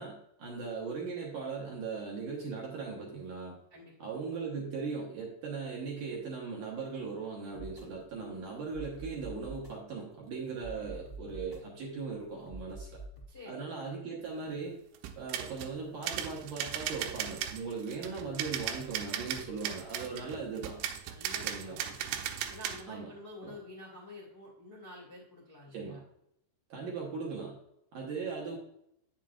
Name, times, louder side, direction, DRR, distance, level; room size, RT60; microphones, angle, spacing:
voice 1, 0.0-3.6 4.0-13.0 13.5-14.8 15.2-20.8 21.4-21.8 22.9-23.1 23.4-23.6 25.7-26.0 26.7-27.6 27.9-28.6, right 4 dB, 70° right, -3 dB, 2.0 m, -39 dB
voice 2, 3.7-4.1 13.3-13.7 20.2-20.6 21.0-22.2 22.5-26.0 26.9-27.2 27.9-28.2, left 1 dB, 80° left, -5 dB, 0.6 m, -50 dB
sound 1, 7.5-13.3, right 1 dB, 20° left, 1.1 m, -48 dB
sound 2, 14.9-15.8 16.0-22.8, right 10 dB, 85° right, 3.0 m, -37 dB
9.0 x 7.4 x 2.4 m, 0.77 s
omnidirectional pair, 5.4 m